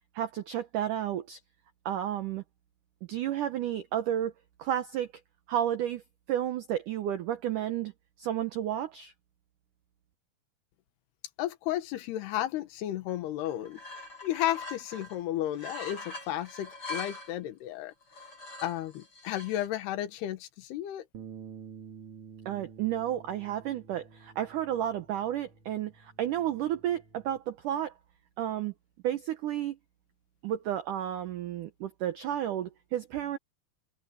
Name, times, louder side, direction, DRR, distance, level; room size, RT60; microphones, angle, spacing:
voice 1, 0.1-1.4 1.9-2.4 3.1-4.3 4.6-5.1 5.5-6.0 6.3-7.9 8.2-9.1 22.5-27.9 28.4-28.7 29.0-29.8 30.4-33.4, right 11 dB, 75° right, 1.9 m, -32 dB
voice 2, 11.4-17.9 18.6-21.1, left 13 dB, 75° left, 3.3 m, -33 dB
sound 1, 13.1-13.2 13.4-15.2 15.5-17.4 18.0-19.7, left 3 dB, 30° left, 5.6 m, -43 dB
Bass guitar, 21.1-27.4, right 6 dB, 45° right, 2.2 m, -50 dB
omnidirectional pair, 4.9 m